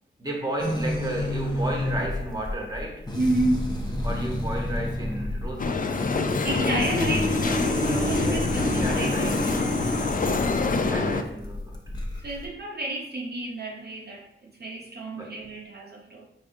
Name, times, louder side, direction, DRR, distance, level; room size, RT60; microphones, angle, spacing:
voice 1, 0.2-3.1 4.0-6.1 8.2-11.8 15.1-15.4, right 1 dB, 20° right, 0 dB, 0.9 m, -33 dB
sound 1, 0.6-12.4, left 1 dB, 20° left, 0.7 m, -30 dB
voice 2, 3.1-3.9 6.3-9.6 10.7-11.1 12.2-16.3, right 1 dB, 50° right, -2 dB, 0.6 m, -31 dB
sound 2, 5.6-11.2, left 3 dB, 40° left, 0.4 m, -26 dB
4.9 x 3.4 x 2.6 m, 0.74 s
wide cardioid pair, 95°, 21 cm